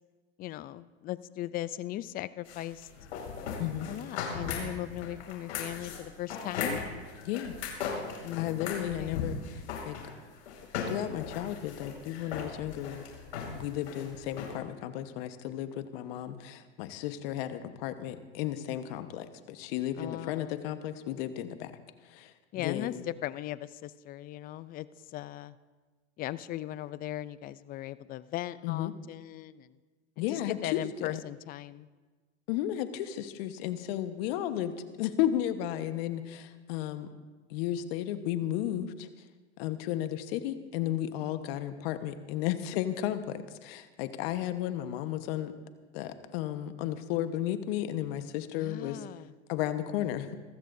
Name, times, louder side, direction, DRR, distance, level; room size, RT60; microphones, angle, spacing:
voice 1, 0.4-2.9 3.9-6.8 8.2-9.2 20.0-20.6 22.5-25.6 26.2-29.8 30.2-31.9 48.5-49.3, left 14 dB, 25° left, 16 dB, 0.4 m, -38 dB
sound 1, 2.5-14.5, left 6 dB, 80° left, 5.0 m, -38 dB
voice 2, 8.4-10.0 10.9-13.0 13.5-21.7 22.0-23.0 28.6-28.9 30.2-31.2 32.5-37.1 37.5-39.1 39.6-45.5 45.9-49.1 49.5-50.3, left 12 dB, 60° left, 9 dB, 1.2 m, -34 dB
25.5 x 15.0 x 2.7 m, 1.3 s
hypercardioid pair, 115°, 35 cm